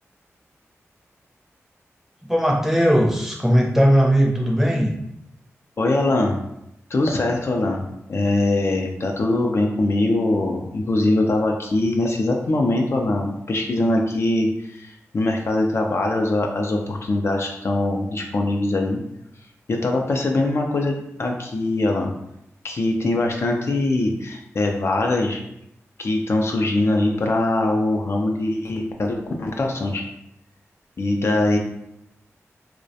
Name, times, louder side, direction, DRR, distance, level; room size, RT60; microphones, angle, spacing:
voice 1, 2.2-4.9, equal, 5° right, -1 dB, 0.6 m, -18 dB
voice 2, 5.8-6.4 6.9-7.8 8.1-19.0 19.7-22.1 22.6-25.4 26.0-30.0 31.0-31.6, left 2 dB, 50° left, 1 dB, 0.3 m, -22 dB
2.3 x 2.1 x 2.6 m, 0.83 s
cardioid pair, 50°, 5 cm